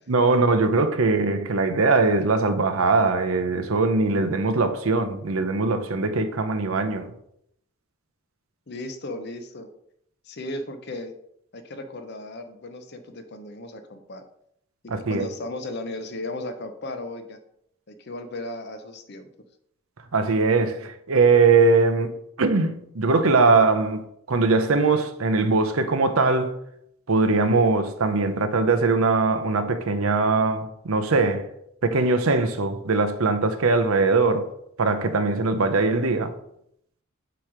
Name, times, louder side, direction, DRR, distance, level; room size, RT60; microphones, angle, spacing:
voice 1, 0.1-7.1 14.9-15.3 20.1-26.6 27.1-31.5 31.8-34.5 34.8-36.3, right 3 dB, 75° right, 0.7 m, -21 dB
voice 2, 8.7-9.7 10.2-11.1 11.5-14.2 14.8-17.4 17.9-19.3, left 2 dB, 50° left, 0.7 m, -35 dB
7.7 x 3.1 x 4.9 m
head